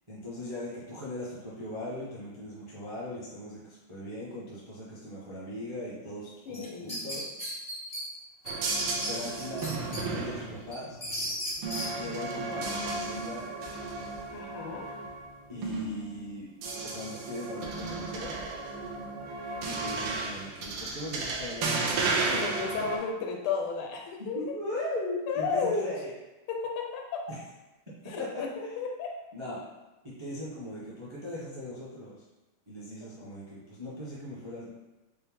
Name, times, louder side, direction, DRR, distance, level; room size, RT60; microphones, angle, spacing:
voice 1, 0.1-7.3 9.1-9.8 10.1-11.0 11.9-13.5 15.5-16.5 16.8-18.5 19.6-22.8 24.2-26.1 28.0-28.4 29.3-29.6 30.0-32.2 32.7-34.7, left 1 dB, 40° right, -8 dB, 0.4 m, -39 dB
voice 2, 6.5-7.2 14.3-14.9 22.2-24.4 25.3-25.9 26.5-27.3 28.0-29.1 33.0-33.3, left 4 dB, 90° left, 2 dB, 1.6 m, -33 dB
sound 1, 6.5-8.0 8.5-8.6 8.8-10.0 10.4-11.9, equal, 30° left, 0.5 m, -35 dB
sound 2, 8.5-16.4 16.6-23.0, right 3 dB, 75° right, 1.3 m, -34 dB
5.3 x 2.2 x 3.5 m, 1.1 s
omnidirectional pair, 2.4 m